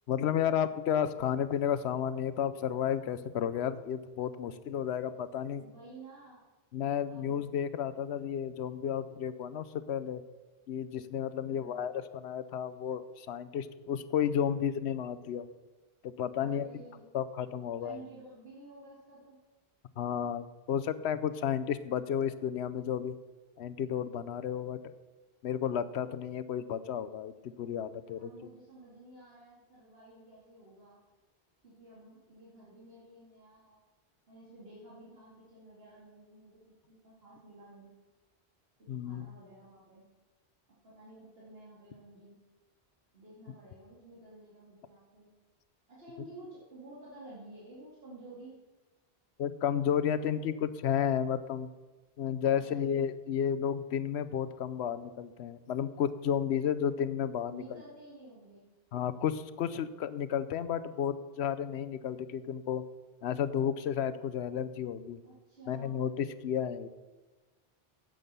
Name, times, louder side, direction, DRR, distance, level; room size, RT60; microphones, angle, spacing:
voice 1, 0.1-5.6 6.7-10.2 10.7-15.5 16.0-16.7 17.1-18.0 20.0-23.1 23.6-24.8 25.4-28.3 38.9-39.3 49.4-51.7 52.2-57.8 58.9-62.8 63.2-65.2 65.7-66.9, left 8 dB, 85° left, 13 dB, 0.9 m, -32 dB
voice 2, 5.5-6.4 7.1-7.4 11.4-11.8 14.1-14.6 16.4-17.0 17.7-19.4 28.2-31.0 31.6-33.8 34.3-36.6 36.9-37.9 39.0-40.0 40.8-42.4 43.1-45.3 45.9-48.6 50.2-50.5 52.5-53.0 57.5-58.7 65.2-66.1, right 2 dB, 65° right, -6 dB, 2.7 m, -52 dB
9.4 x 7.9 x 6.8 m, 1.2 s
omnidirectional pair, 1.1 m